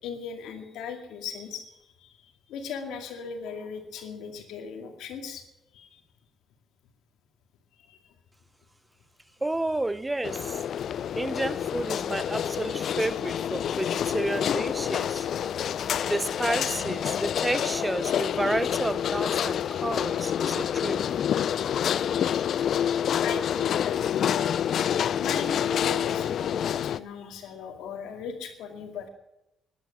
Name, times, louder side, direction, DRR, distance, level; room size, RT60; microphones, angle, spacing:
voice 1, 0.0-1.7 2.0-5.4 5.7-6.0 7.9-8.0 23.2-24.6 25.2-29.1, left 6 dB, 90° left, 2.4 m, -38 dB
voice 2, 9.4-10.6 11.1-15.3 16.0-21.1, right 2 dB, 15° right, 0.6 m, -31 dB
sound 1, 10.2-27.0, left 9 dB, 65° left, 0.4 m, -28 dB
12.5 x 11.5 x 7.4 m
cardioid pair, 90°, 0 cm